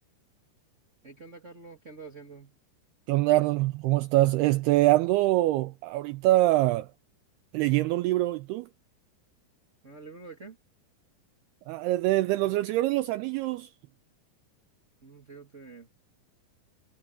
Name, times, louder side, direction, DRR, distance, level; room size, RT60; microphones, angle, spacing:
voice 1, 1.0-2.5 9.8-10.6 15.0-15.9, right 4 dB, 40° right, 1.0 m, -47 dB
voice 2, 3.1-6.9 7.5-8.7 11.7-13.7, right 17 dB, 85° right, 2.4 m, -24 dB
omnidirectional pair, 5.1 m